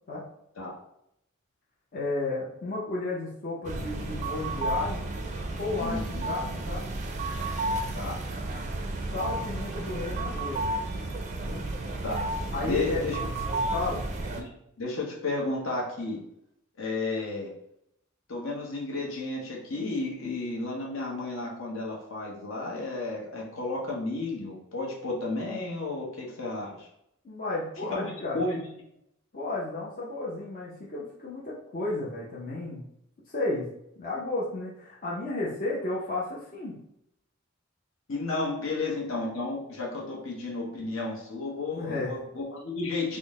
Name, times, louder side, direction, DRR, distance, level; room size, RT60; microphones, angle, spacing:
voice 1, 1.9-5.0 5.6-6.9 9.1-10.6 11.4-11.7 12.5-13.0 13.7-14.0 27.2-28.4 29.3-32.8 33.3-33.7 34.0-36.8 41.7-42.1, left 2 dB, 40° left, -5 dB, 0.6 m, -33 dB
sound 1, 3.6-14.4, right 2 dB, 35° right, 0.4 m, -32 dB
voice 2, 5.8-6.3 7.9-8.2 12.0-12.2 12.6-13.2 14.4-14.5 14.8-16.2 16.8-17.5 18.3-26.9 27.9-28.6 38.1-43.2, left 3 dB, 70° left, -2 dB, 0.9 m, -32 dB
3.7 x 2.1 x 3.5 m, 0.77 s
head